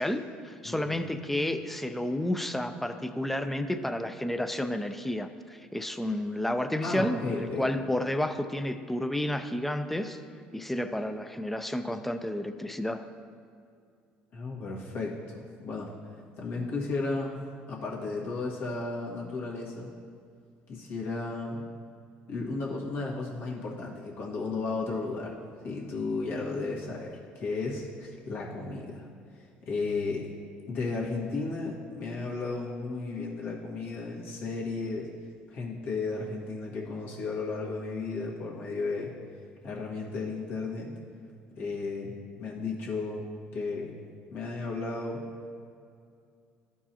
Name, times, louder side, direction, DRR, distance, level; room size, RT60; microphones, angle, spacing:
voice 1, 0.0-10.2 10.5-13.1, left 1 dB, 5° left, 9 dB, 0.4 m, -31 dB
voice 2, 0.6-1.0 6.8-7.9 14.3-15.9 16.4-17.4 17.7-19.9 20.7-21.6 22.3-25.4 25.6-29.1 29.6-30.3 30.7-35.1 35.5-39.1 39.6-40.9 41.6-43.3 43.5-43.9 44.3-45.2, left 3 dB, 65° left, -3 dB, 1.6 m, -34 dB
12.5 x 4.6 x 2.9 m, 2.3 s
supercardioid pair, 95°, 4 cm